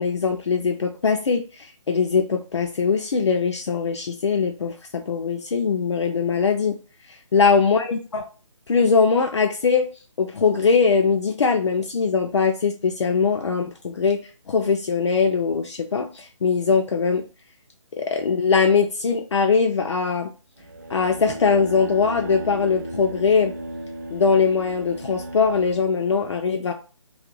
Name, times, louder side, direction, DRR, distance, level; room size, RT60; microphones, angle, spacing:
voice 1, 0.0-6.8 7.3-8.2 8.7-9.9 10.2-14.2 14.5-17.2 18.0-20.3 20.9-23.5 24.1-26.7, left 5 dB, 60° left, 3 dB, 0.4 m, -21 dB
sound 1, 20.6-25.9, right 1 dB, 35° right, 0.5 m, -35 dB
2.4 x 2.1 x 3.0 m, 0.35 s
hypercardioid pair, 175°, 17 cm